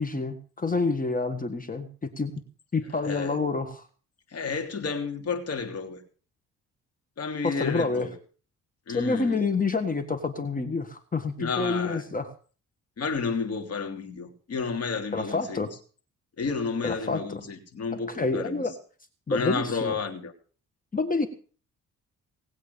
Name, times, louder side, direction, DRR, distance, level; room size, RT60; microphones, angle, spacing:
voice 1, 0.0-1.9 2.2-2.3 2.7-3.9 7.4-8.1 8.9-12.3 15.1-15.7 16.8-17.4 17.9-18.7 19.3-20.0 20.9-21.3, left 3 dB, 25° left, 1.6 m, -28 dB
voice 2, 3.0-3.3 4.3-6.0 7.2-8.1 8.9-9.4 11.4-12.0 13.0-15.6 16.4-18.6 19.3-20.3, left 5 dB, 55° left, 3.1 m, -31 dB
19.5 x 8.3 x 6.9 m
cardioid pair, 90°, 30 cm